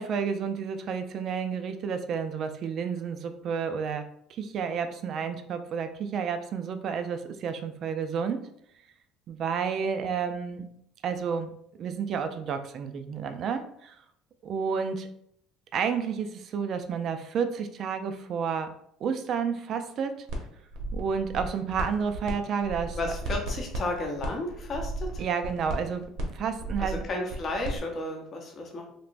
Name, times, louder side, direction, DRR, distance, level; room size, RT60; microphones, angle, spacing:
voice 1, 0.0-4.1 4.4-8.4 9.3-10.7 11.0-11.5 11.8-14.0 14.4-15.1 15.7-18.7 19.0-20.3 20.9-23.1 25.2-27.0, right 6 dB, 40° right, 8 dB, 0.3 m, -30 dB
sound 1, 20.3-20.4 20.7-22.3 22.6-27.8, right 2 dB, 60° right, 0.7 m, -35 dB
voice 2, 23.0-25.2 26.8-28.9, left 2 dB, 30° left, 1 dB, 0.7 m, -33 dB
3.3 x 2.9 x 2.5 m, 0.72 s
cardioid pair, 165°, 0 cm